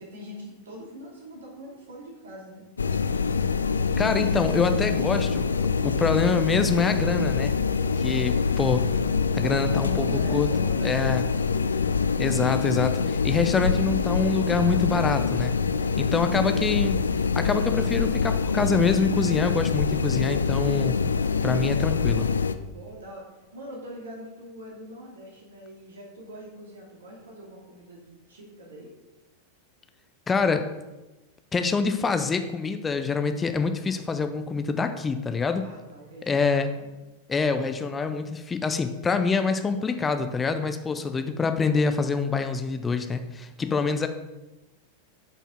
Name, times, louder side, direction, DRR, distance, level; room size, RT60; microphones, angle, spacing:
voice 1, 0.0-2.7 9.6-11.4 22.7-28.9 35.6-36.9 40.9-41.4 43.6-43.9, equal, 65° right, -2 dB, 2.4 m, -43 dB
sound 1, 2.8-22.6, left 5 dB, 75° left, 0.4 m, -25 dB
voice 2, 4.0-5.5 5.8-7.5 8.0-8.8 9.3-10.5 10.8-11.2 12.2-15.5 16.0-17.0 17.3-21.0 21.4-22.3 30.3-30.7 31.5-35.7 36.2-36.7 37.3-44.1, left 4 dB, 15° left, 8 dB, 0.6 m, -25 dB
8.5 x 5.5 x 3.7 m, 1.0 s
figure-of-eight pair, 90°, 0 cm